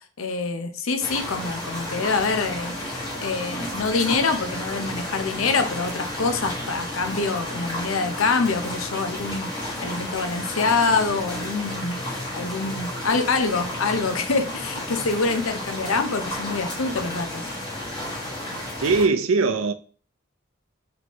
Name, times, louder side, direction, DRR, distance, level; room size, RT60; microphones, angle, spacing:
voice 1, 0.2-17.4, left 4 dB, 85° left, 0.7 m, -25 dB
sound 1, 1.0-19.0, left 1 dB, 20° left, 1.2 m, -32 dB
voice 2, 18.8-19.7, right 4 dB, 85° right, 0.5 m, -20 dB
4.2 x 3.2 x 3.0 m
head